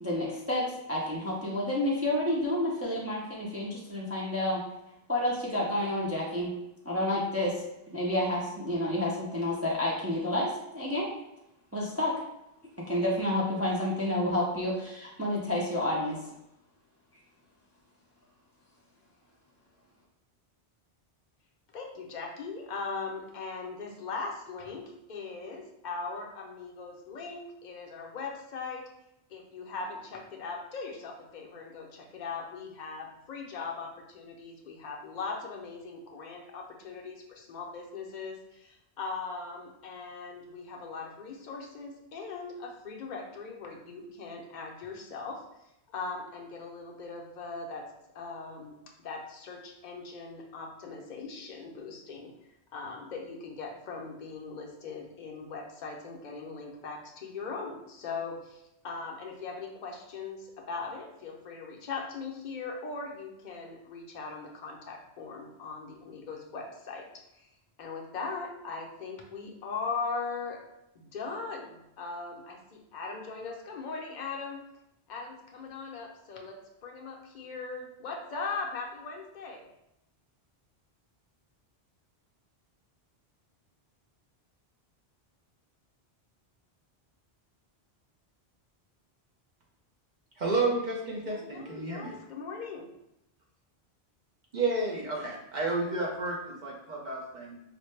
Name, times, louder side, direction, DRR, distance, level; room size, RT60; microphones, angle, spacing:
voice 1, 0.0-4.6 5.1-6.5 6.8-7.6 7.9-11.1 11.7-12.2 12.9-16.2, left 1 dB, 20° right, -4 dB, 0.4 m, -29 dB
voice 2, 21.7-28.8 29.3-45.4 45.9-47.8 48.1-52.3 52.7-67.5 67.8-70.6 70.9-74.6 75.1-79.6 91.2-92.9, left 4 dB, 50° left, 0 dB, 0.7 m, -39 dB
voice 3, 90.4-92.2 94.5-97.6, right 3 dB, 50° right, -3 dB, 0.8 m, -31 dB
4.2 x 2.2 x 3.2 m, 0.85 s
omnidirectional pair, 1.1 m